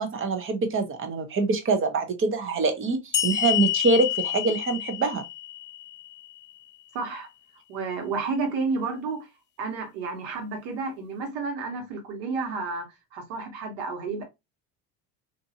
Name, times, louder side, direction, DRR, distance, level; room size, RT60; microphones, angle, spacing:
voice 1, 0.0-5.2, right 3 dB, 30° right, 0.7 m, -25 dB
sound 1, 3.1-6.5, left 12 dB, 25° left, 0.4 m, -28 dB
voice 2, 6.9-7.3 7.7-9.3 9.6-12.8 13.1-14.2, right 4 dB, 85° right, 1.3 m, -31 dB
2.6 x 2.6 x 2.6 m
supercardioid pair, 115°, 43 cm